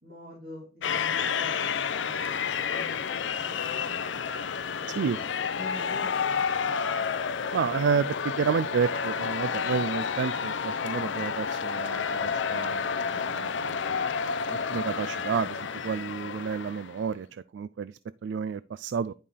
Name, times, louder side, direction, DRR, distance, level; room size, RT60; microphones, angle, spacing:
voice 1, 0.0-3.5 3.8-4.0 4.8-6.8, left 2 dB, 50° right, 3.0 m, -46 dB
sound 1, 0.8-17.0, left 6 dB, 85° left, 0.6 m, -30 dB
voice 2, 7.5-19.1, right 6 dB, 75° right, 0.3 m, -31 dB
11.0 x 5.4 x 3.3 m
head